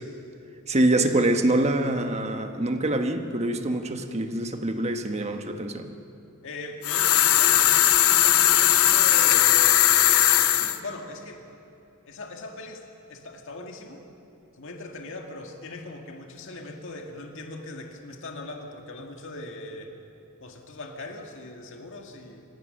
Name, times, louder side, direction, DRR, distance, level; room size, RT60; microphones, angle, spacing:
voice 1, 0.7-5.9, right 1 dB, 30° right, 6 dB, 1.2 m, -25 dB
voice 2, 6.4-11.4 12.1-12.8 13.1-14.0 14.6-19.9 20.4-22.4, left 2 dB, 60° left, 3 dB, 2.0 m, -40 dB
sound 1, 6.8-10.8, left 12 dB, 80° left, 0.8 m, -19 dB
26.5 x 16.0 x 6.5 m, 2.7 s
head